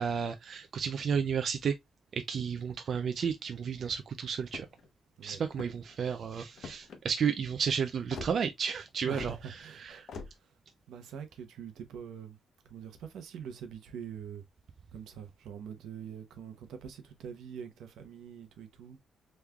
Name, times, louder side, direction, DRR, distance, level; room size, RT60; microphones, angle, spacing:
voice 1, 0.0-1.7 2.1-4.7 5.2-9.3 9.6-10.1, right 7 dB, 55° right, 0.4 m, -32 dB
sound 1, 4.4-4.9 5.5-5.9 6.6-7.0 8.1-8.3 9.1-9.3 10.1-10.3, left 5 dB, 65° left, 0.8 m, -43 dB
voice 2, 9.0-10.1 10.4-10.5 10.9-12.4 12.6-14.4 14.9-19.0, right 7 dB, 85° right, 0.8 m, -44 dB
3.5 x 3.1 x 2.3 m
cardioid pair, 100°, 0 cm